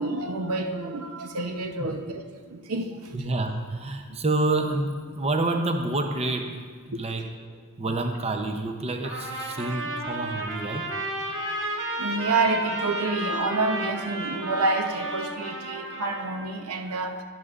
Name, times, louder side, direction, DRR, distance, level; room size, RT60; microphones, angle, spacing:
voice 1, 0.0-3.2 6.9-7.0 12.0-17.2, right 3 dB, 85° right, 5 dB, 0.8 m, -28 dB
voice 2, 3.1-7.3 7.8-10.9, right 2 dB, 30° right, 5 dB, 0.6 m, -28 dB
Trumpet, 9.0-16.5, right 1 dB, 60° right, 1.5 m, -32 dB
11.5 x 11.0 x 2.4 m, 1.5 s
head